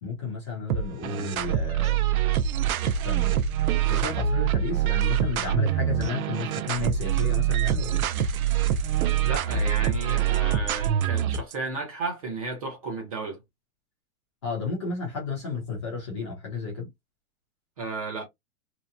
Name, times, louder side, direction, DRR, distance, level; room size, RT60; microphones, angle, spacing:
voice 1, 0.0-2.0 3.0-3.4 3.9-8.0 14.4-16.9, left 4 dB, 20° left, 0.6 m, -32 dB
sound 1, 0.7-11.5, right 10 dB, 80° right, 0.5 m, -25 dB
voice 2, 9.2-13.4 17.8-18.3, right 3 dB, 25° right, 0.7 m, -33 dB
2.9 x 2.1 x 2.4 m
hypercardioid pair, 170°, 42 cm